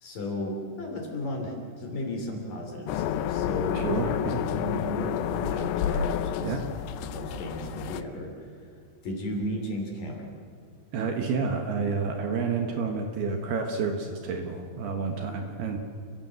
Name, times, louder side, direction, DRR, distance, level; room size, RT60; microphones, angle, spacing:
voice 1, 0.0-4.2 4.5-6.6 7.0-8.5 9.0-10.3, left 1 dB, 50° left, 2 dB, 4.3 m, -34 dB
sound 1, 2.9-8.0, left 9 dB, 75° left, 2.6 m, -30 dB
voice 2, 3.7-4.4 6.4-6.6 10.9-15.8, right 5 dB, 65° right, 4 dB, 3.0 m, -29 dB
29.0 x 15.5 x 7.7 m, 2.4 s
omnidirectional pair, 5.6 m